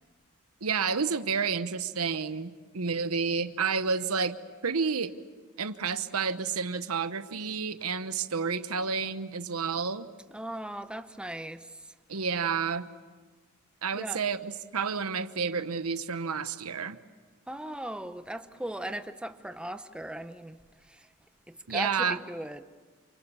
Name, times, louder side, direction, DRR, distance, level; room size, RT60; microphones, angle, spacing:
voice 1, 0.6-4.4 4.6-5.1 5.6-10.1 12.1-12.9 13.8-17.0 21.7-22.2, right 5 dB, 90° right, 1.1 m, -30 dB
voice 2, 10.3-11.7 13.9-14.2 17.5-20.6 20.9-21.1 21.5-22.6, right 1 dB, 5° right, 0.9 m, -38 dB
28.5 x 28.5 x 7.2 m
head